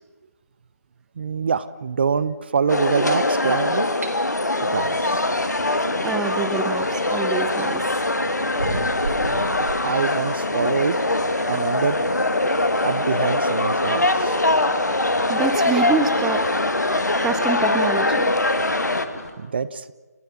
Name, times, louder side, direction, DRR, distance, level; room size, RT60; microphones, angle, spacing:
voice 1, 1.2-3.9 4.7-5.2 9.2-11.0 11.5-12.0 12.8-14.3 19.4-19.9, right 6 dB, 35° right, 16 dB, 0.8 m, -25 dB
sound 1, 2.7-19.1, left 2 dB, 85° left, 2.2 m, -22 dB
sound 2, 4.0-4.2 6.0-6.1 6.8-7.8 8.6-9.9, right 2 dB, 65° right, 4.5 m, -32 dB
sound 3, 4.6-19.3, left 2 dB, 70° left, 5.5 m, -38 dB
voice 2, 6.0-8.2 15.3-16.4 16.8-18.3, right 5 dB, 5° right, 7 dB, 0.7 m, -26 dB
29.5 x 15.0 x 7.3 m, 1.2 s
figure-of-eight pair, 155°, 9 cm